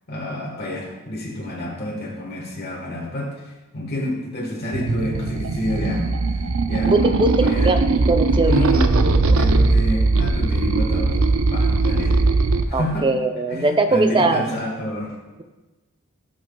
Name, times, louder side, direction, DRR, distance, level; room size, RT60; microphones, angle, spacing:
voice 1, 0.1-7.1 7.4-7.7 8.2-12.2 12.7-13.1 13.5-15.1, left 1 dB, 50° left, -2 dB, 1.4 m, -28 dB
sound 1, 4.7-12.6, right 3 dB, 70° right, 0.5 m, -19 dB
voice 2, 6.9-7.3 7.6-9.4 12.7-14.4, right 2 dB, 25° right, 6 dB, 0.6 m, -21 dB
17.5 x 6.0 x 2.3 m, 1.1 s
head